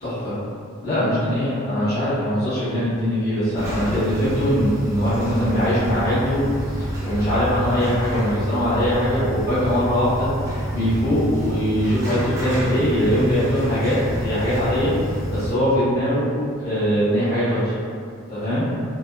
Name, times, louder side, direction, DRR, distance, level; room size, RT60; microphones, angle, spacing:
voice 1, 0.0-0.4 0.8-6.4 6.8-10.3 10.7-14.9 15.3-17.7 18.3-18.7, equal, 45° left, -15 dB, 1.0 m, -21 dB
sound 1, 3.5-15.5, equal, 15° right, 0.4 m, -28 dB
2.5 x 2.2 x 2.2 m, 2.2 s
head